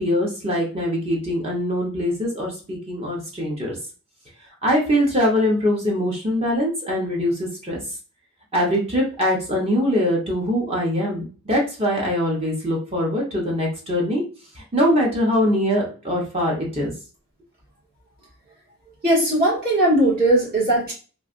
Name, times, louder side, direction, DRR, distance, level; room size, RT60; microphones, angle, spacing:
voice 1, 0.0-3.8 4.6-7.8 8.5-14.2 14.6-16.9, equal, 25° right, -2 dB, 0.8 m, -22 dB
voice 2, 19.0-20.9, right 1 dB, 45° right, -6 dB, 1.6 m, -18 dB
3.2 x 2.5 x 2.4 m, 0.37 s
head